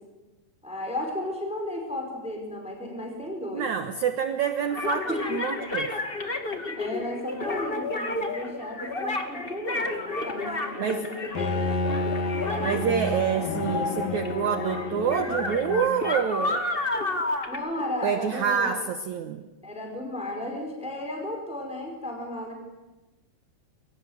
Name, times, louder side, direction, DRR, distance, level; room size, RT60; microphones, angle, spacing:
voice 1, 0.6-3.7 5.1-5.2 5.8-5.9 6.3-11.7 12.5-13.0 17.5-18.8 19.6-22.6, left 1 dB, ahead, 2 dB, 4.7 m, -34 dB
voice 2, 3.5-5.9 10.8-11.1 12.6-16.7 18.0-19.5, right 7 dB, 60° right, 8 dB, 2.1 m, -27 dB
sound 1, 4.6-13.8 14.1-18.4, left 2 dB, 20° left, 1.5 m, -31 dB
Bowed string instrument, 11.3-16.1, left 3 dB, 55° left, 3.8 m, -30 dB
29.5 x 24.5 x 8.2 m, 1.1 s
omnidirectional pair, 4.7 m